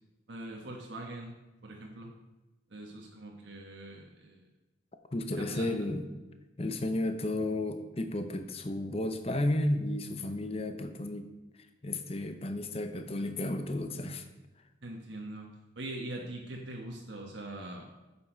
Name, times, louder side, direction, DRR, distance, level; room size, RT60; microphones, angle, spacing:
voice 1, 0.3-1.4 1.6-2.1 2.7-4.5 5.3-5.9 14.8-15.5 15.7-17.9, right 1 dB, 75° right, 0 dB, 1.2 m, -42 dB
voice 2, 5.1-6.0 6.6-11.3 11.8-14.2, left 1 dB, 30° left, 8 dB, 0.7 m, -33 dB
8.6 x 7.2 x 4.4 m, 1.1 s
head